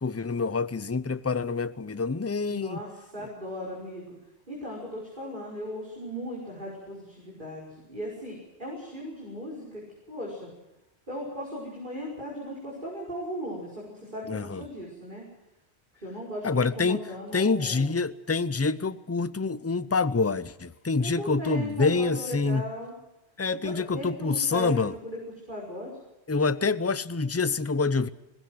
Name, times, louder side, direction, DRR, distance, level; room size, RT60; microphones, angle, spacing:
voice 1, 0.0-2.8 14.3-14.6 16.4-17.0 17.3-22.6 23.4-24.9 26.3-28.1, left 4 dB, 15° left, 0.6 m, -26 dB
voice 2, 2.5-4.2 4.5-10.5 11.1-15.2 16.0-17.9 21.0-23.0 23.6-25.2 25.5-26.0, equal, 45° right, 5.6 m, -37 dB
21.5 x 19.0 x 7.9 m
omnidirectional pair, 1.1 m